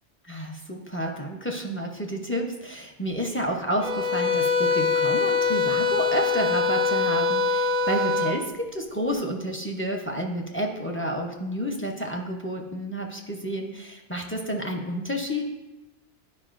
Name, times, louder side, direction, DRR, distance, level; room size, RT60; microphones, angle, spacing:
voice 1, 0.3-15.4, equal, 15° left, 1 dB, 0.5 m, -30 dB
sound 1, 3.8-8.4, left 4 dB, 45° right, 0.5 m, -23 dB
10.5 x 4.9 x 2.5 m, 1.1 s
omnidirectional pair, 1.1 m